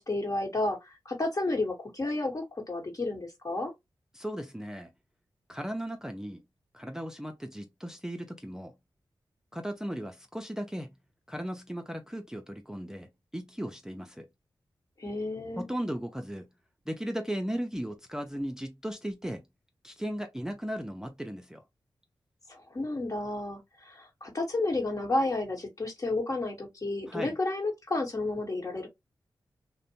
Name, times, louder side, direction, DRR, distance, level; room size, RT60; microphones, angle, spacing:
voice 1, 0.0-3.7 15.0-15.6 22.5-28.9, left 2 dB, 40° left, 1.1 m, -31 dB
voice 2, 4.1-4.9 5.5-6.4 6.7-8.7 9.5-10.9 11.3-14.3 15.6-16.5 16.9-19.5 19.8-21.6 27.1-27.4, equal, 5° right, 0.5 m, -36 dB
2.5 x 2.1 x 2.8 m
cardioid pair, 45°, 9 cm